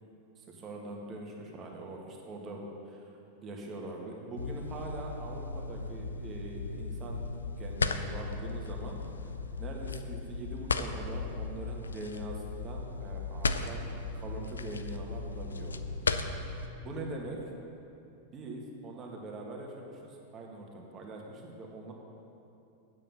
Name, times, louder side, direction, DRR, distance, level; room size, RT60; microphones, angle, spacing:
voice 1, 0.4-3.1 3.4-7.2 7.6-9.0 9.6-13.8 14.1-15.8 16.8-17.4 18.3-21.9, right 2 dB, 30° right, 0 dB, 1.7 m, -42 dB
sound 1, 4.4-16.7, left 4 dB, 75° left, 0.4 m, -36 dB
9.1 x 7.6 x 6.7 m, 2.8 s
figure-of-eight pair, 90°, 0 cm